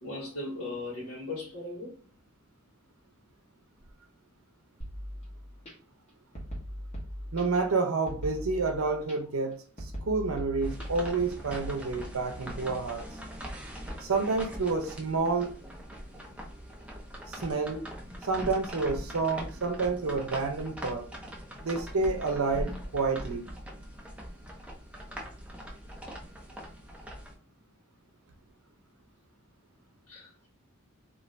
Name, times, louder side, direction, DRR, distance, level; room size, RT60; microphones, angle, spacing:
voice 1, 0.0-2.0 30.1-30.5, left 2 dB, 70° left, 1.0 m, -38 dB
sound 1, 4.8-5.7 6.4-7.7 8.1-9.1 9.8-11.7, equal, 30° left, 0.9 m, -40 dB
voice 2, 7.3-9.6 10.0-13.0 14.0-15.5 17.3-17.8 18.2-21.1 21.6-23.5, right 4 dB, 85° right, 0.6 m, -29 dB
sound 2, 10.6-27.3, equal, 5° right, 0.5 m, -41 dB
2.5 x 2.4 x 3.2 m
head